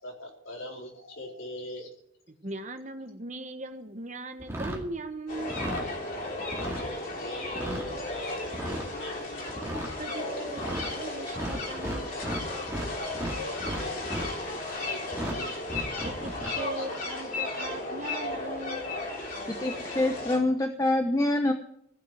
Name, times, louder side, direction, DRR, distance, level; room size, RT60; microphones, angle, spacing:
voice 1, 0.0-1.9 6.6-9.5 13.4-14.6 14.9-15.6 16.5-16.9, equal, 80° left, -1 dB, 4.2 m, -42 dB
voice 2, 2.4-5.5 10.0-12.4 16.0-18.9, right 2 dB, 35° right, 7 dB, 1.3 m, -39 dB
sound 1, 4.4-4.9 5.4-5.9 6.4-6.9 7.4-7.9 8.4-8.9 9.5-9.9 10.5-10.9 11.3-12.9 13.1-14.3 15.1-15.4 15.7-16.5, right 1 dB, 15° right, 2.3 m, -35 dB
sound 2, 5.3-20.4, left 2 dB, 45° left, 3.7 m, -35 dB
voice 3, 19.6-21.5, left 1 dB, 15° left, 5 dB, 0.8 m, -25 dB
15.5 x 6.5 x 9.7 m, 0.73 s
head